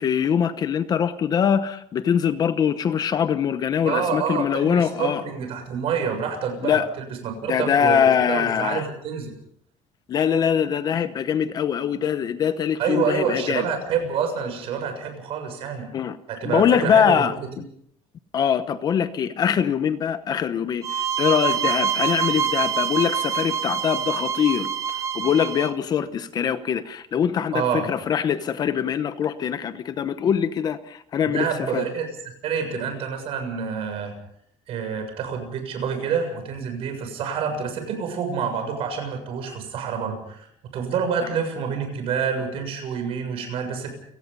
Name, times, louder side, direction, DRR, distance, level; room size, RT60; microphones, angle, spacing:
voice 1, 0.0-5.2 6.6-6.9 7.5-8.9 10.1-13.7 15.9-16.2 16.4-17.7 18.3-31.9 41.2-41.3, left 8 dB, 30° left, 12 dB, 0.9 m, -23 dB
voice 2, 3.8-9.3 12.8-15.9 16.3-17.5 27.5-27.9 31.3-32.1 32.4-34.1 34.7-40.5 40.7-43.9, right 6 dB, 50° right, 5 dB, 7.0 m, -27 dB
sound 1, 20.8-25.7, right 7 dB, 25° right, 0.8 m, -26 dB
29.5 x 17.5 x 5.5 m, 0.70 s
cardioid pair, 170°, 12 cm